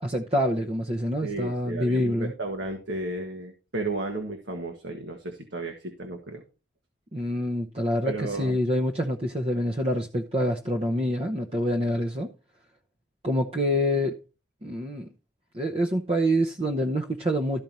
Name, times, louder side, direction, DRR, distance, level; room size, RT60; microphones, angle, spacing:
voice 1, 0.0-2.3 7.1-12.3 13.2-14.2 14.6-15.1 15.5-17.6, equal, 30° right, 0.8 m, -26 dB
voice 2, 1.2-6.4 8.0-8.6, right 2 dB, 75° right, 1.5 m, -33 dB
13.0 x 4.5 x 5.3 m
head